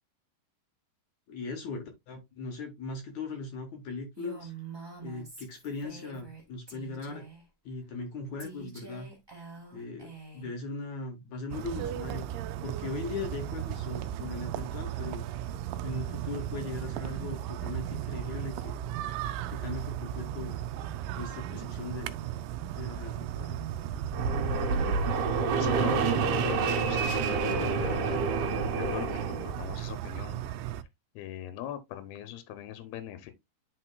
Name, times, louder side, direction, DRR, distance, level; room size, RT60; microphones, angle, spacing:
voice 1, 1.3-4.5 5.0-7.3 7.7-9.1 9.7-12.3 12.6-15.3 15.8-18.8 19.5-20.6 21.2-22.1 22.7-23.6, left 3 dB, 65° left, 2.1 m, -39 dB
Female speech woman speaking, 4.2-6.4 6.7-7.4 8.4-10.5, right 5 dB, 30° right, 0.4 m, -46 dB
sound 1, 11.5-30.8, right 12 dB, 90° right, 1.9 m, -36 dB
Fixed-wing aircraft airplane, 24.1-29.8, right 4 dB, 65° right, 2.3 m, -28 dB
voice 2, 25.6-28.2 28.6-30.4 31.2-33.3, left 11 dB, 85° left, 2.7 m, -41 dB
11.0 x 4.3 x 2.2 m
omnidirectional pair, 4.4 m